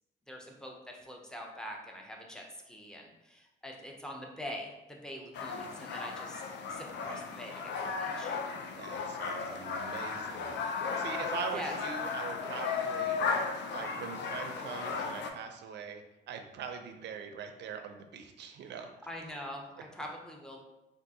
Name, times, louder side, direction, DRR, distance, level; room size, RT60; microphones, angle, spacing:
voice 1, 0.3-6.4 6.7-7.7 8.0-8.3 11.5-11.7 18.7-18.8 19.1-19.7 19.9-20.6, equal, 5° left, 0 dB, 0.6 m, -43 dB
sound 1, 5.3-15.3, left 5 dB, 65° left, 0.4 m, -35 dB
voice 2, 8.8-10.6 11.0-13.2 13.7-18.9, right 7 dB, 60° right, 7 dB, 0.4 m, -42 dB
3.5 x 2.4 x 2.7 m, 0.96 s
cardioid pair, 90°, 20 cm